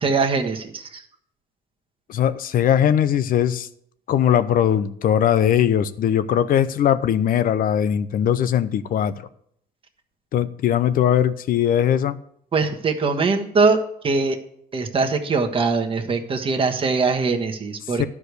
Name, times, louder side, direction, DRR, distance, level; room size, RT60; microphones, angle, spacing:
voice 1, 0.0-1.0 12.5-13.8 14.0-14.4 14.7-18.1, right 4 dB, 30° right, 3 dB, 1.3 m, -22 dB
voice 2, 2.1-3.7 4.1-9.2 10.3-12.2 18.0-18.1, left 9 dB, 55° left, 14 dB, 0.7 m, -20 dB
11.5 x 4.9 x 8.1 m, 0.69 s
cardioid pair, 110°, 17 cm